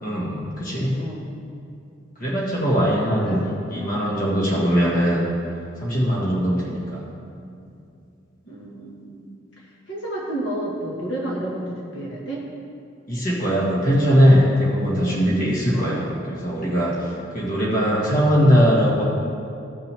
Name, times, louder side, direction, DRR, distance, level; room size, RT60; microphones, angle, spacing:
voice 1, 0.0-0.9 2.2-3.4 3.7-5.2 5.8-7.1 13.1-16.9 17.3-19.0, equal, 45° left, -5 dB, 1.7 m, -20 dB
voice 2, 1.0-1.3 3.0-3.4 3.7-4.0 8.4-9.3 9.9-12.4 15.7-16.0, right 1 dB, 65° left, -5 dB, 1.7 m, -31 dB
15.5 x 5.9 x 3.5 m, 2.5 s
head